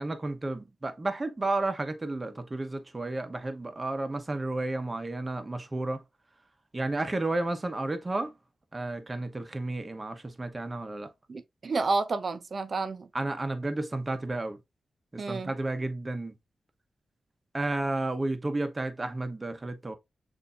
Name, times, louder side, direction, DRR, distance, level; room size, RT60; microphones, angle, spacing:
voice 1, 0.0-6.0 6.7-8.3 8.7-11.1 13.1-14.6 15.1-16.3 17.5-20.0, right 2 dB, 30° right, 0.9 m, -32 dB
voice 2, 11.3-13.1 15.2-15.5, right 3 dB, 55° right, 0.7 m, -30 dB
6.7 x 2.7 x 2.4 m
cardioid pair, 60°, 0 cm